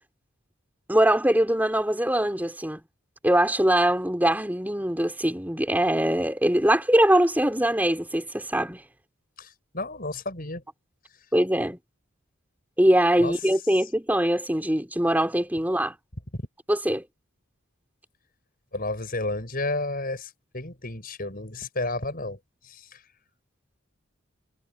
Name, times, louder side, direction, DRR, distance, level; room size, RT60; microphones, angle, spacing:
voice 1, 0.9-2.8 3.2-8.8 11.3-11.8 12.8-15.9 16.7-17.0, right 1 dB, 10° right, 3.5 m, -22 dB
voice 2, 9.4-10.6 13.2-13.3 13.8-13.9 16.3-16.4 18.7-23.0, left 2 dB, 45° left, 6.5 m, -32 dB
head